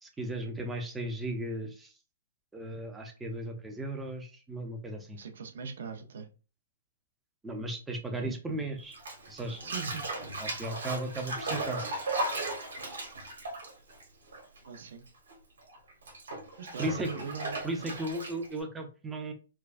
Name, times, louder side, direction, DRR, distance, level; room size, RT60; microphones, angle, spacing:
voice 1, 0.0-1.9 2.5-5.2 7.4-9.0 9.3-9.7 10.4-11.8 16.8-17.1 17.6-19.3, right 1 dB, 10° right, 0.6 m, -36 dB
voice 2, 5.2-6.3 9.6-10.0 14.7-15.1 16.6-17.9, right 5 dB, 70° right, 0.7 m, -41 dB
Bathtub (filling or washing), 8.9-14.8 15.0-18.6, right 2 dB, 85° right, 1.5 m, -36 dB
4.6 x 2.2 x 2.5 m
hypercardioid pair, 150°, 0 cm